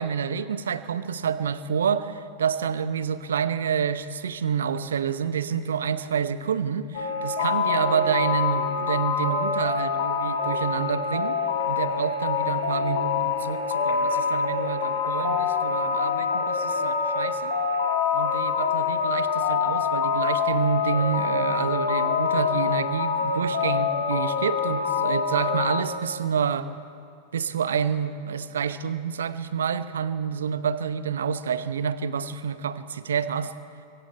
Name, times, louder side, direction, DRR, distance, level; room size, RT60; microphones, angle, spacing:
voice 1, 0.0-11.4 11.7-17.5 18.1-26.7 27.3-33.5, right 7 dB, 65° right, 14 dB, 0.8 m, -28 dB
sound 1, 6.9-25.8, left 6 dB, 60° left, 1.9 m, -25 dB
27.0 x 23.5 x 4.6 m, 2.5 s
figure-of-eight pair, 90°, 0 cm